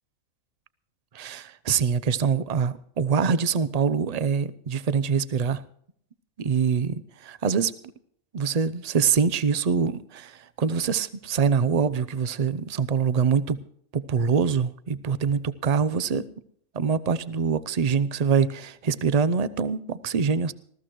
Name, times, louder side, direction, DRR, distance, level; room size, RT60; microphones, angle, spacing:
voice 1, 1.1-5.6 6.4-7.7 8.3-13.6 13.9-16.2 16.7-20.5, right 6 dB, 40° right, 15 dB, 0.6 m, -24 dB
20.0 x 14.5 x 3.1 m, 0.66 s
omnidirectional pair, 1.4 m